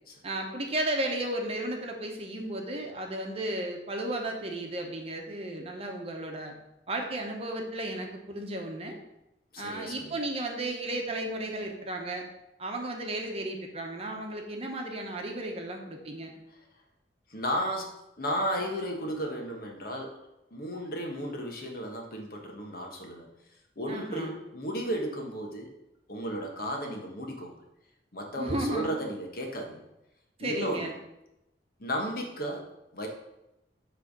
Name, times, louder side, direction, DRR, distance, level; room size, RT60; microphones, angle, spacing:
voice 1, 0.2-6.5 6.9-9.0 9.6-12.2 12.6-16.3 23.9-24.3 28.4-28.9 30.4-30.9, right 1 dB, 35° right, 2 dB, 1.0 m, -34 dB
voice 2, 9.5-10.1 17.3-20.2 20.5-23.3 23.8-25.7 26.1-27.5 28.1-29.8 30.4-30.9 31.8-32.7 32.9-33.1, equal, 55° left, 1 dB, 1.3 m, -34 dB
7.7 x 3.4 x 6.1 m, 0.90 s
head